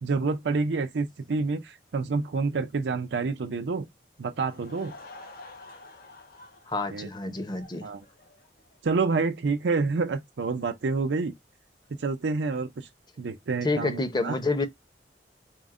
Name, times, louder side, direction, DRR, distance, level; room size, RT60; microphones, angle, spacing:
voice 1, 0.0-3.9 4.2-4.9 6.9-7.3 7.8-8.0 8.8-11.3 12.0-12.9 13.2-14.4, right 4 dB, 85° right, 0.5 m, -28 dB
Laughter / Crowd, 4.3-8.8, left 2 dB, 55° left, 1.0 m, -49 dB
voice 2, 6.7-7.9 13.6-14.7, left 2 dB, 25° left, 0.6 m, -28 dB
4.4 x 2.1 x 3.6 m
head